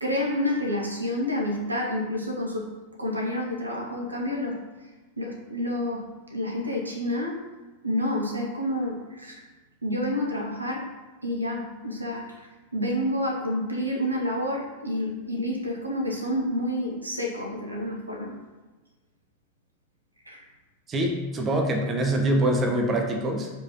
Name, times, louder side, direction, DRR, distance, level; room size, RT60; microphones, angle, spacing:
voice 1, 0.0-2.7 3.0-4.6 5.2-7.4 7.8-9.4 9.8-10.9 11.2-18.3 20.2-20.4, left 1 dB, 85° right, 0 dB, 1.1 m, -29 dB
voice 2, 20.9-23.5, right 1 dB, 25° right, 2 dB, 0.9 m, -24 dB
4.9 x 4.4 x 5.4 m, 1.2 s
figure-of-eight pair, 90°, 0 cm